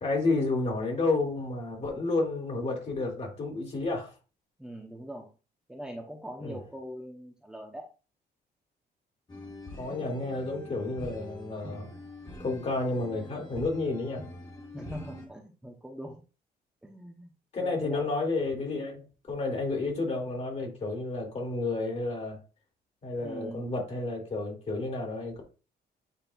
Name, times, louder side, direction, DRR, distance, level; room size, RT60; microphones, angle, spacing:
voice 1, 0.0-4.1 6.4-6.6 9.8-11.9 12.4-14.2 17.5-22.4 23.0-25.4, left 3 dB, 40° left, 0 dB, 2.4 m, -31 dB
voice 2, 4.6-5.3 5.7-7.9 14.7-16.2 16.8-17.3 17.6-18.1 23.2-23.6, equal, 5° right, -1 dB, 0.9 m, -42 dB
sound 1, 9.3-15.3, left 1 dB, 25° left, 1.6 m, -44 dB
9.1 x 4.3 x 2.4 m, 0.34 s
cardioid pair, 160°, 17 cm